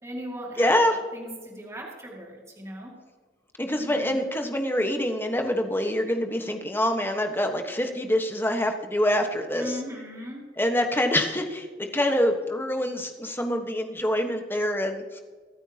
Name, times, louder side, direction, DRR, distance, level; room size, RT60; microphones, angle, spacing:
voice 1, 0.0-2.9 3.7-4.2 9.5-10.5, equal, 15° right, -1 dB, 2.3 m, -38 dB
voice 2, 0.6-1.0 3.6-9.7 10.6-15.2, left 1 dB, 15° left, 4 dB, 1.3 m, -25 dB
24.5 x 9.2 x 2.9 m, 1.5 s
head